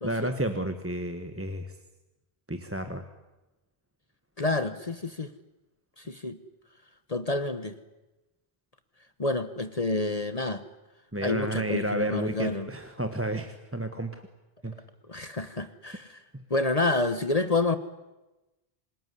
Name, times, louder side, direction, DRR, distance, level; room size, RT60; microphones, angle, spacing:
voice 1, 0.0-1.7 2.5-3.1 11.1-14.2 14.6-14.7 16.3-16.4, right 1 dB, 15° right, 7 dB, 1.4 m, -31 dB
voice 2, 4.4-5.3 6.0-6.4 7.1-7.7 9.2-10.6 11.2-12.7 15.1-16.2 16.5-17.8, left 2 dB, 40° left, 11 dB, 1.2 m, -28 dB
27.0 x 20.5 x 9.9 m, 1.0 s
omnidirectional pair, 1.0 m